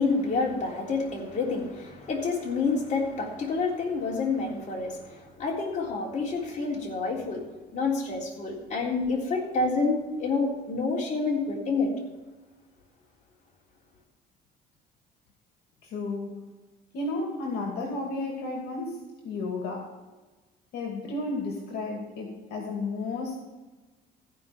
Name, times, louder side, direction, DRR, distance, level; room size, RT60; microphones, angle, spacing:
voice 1, 0.0-11.9, left 4 dB, 45° left, -2 dB, 3.5 m, -28 dB
voice 2, 15.8-16.5 16.9-19.9 20.7-23.4, left 3 dB, 80° left, 1 dB, 2.4 m, -33 dB
15.0 x 5.4 x 7.2 m, 1.2 s
cardioid pair, 110°, 17 cm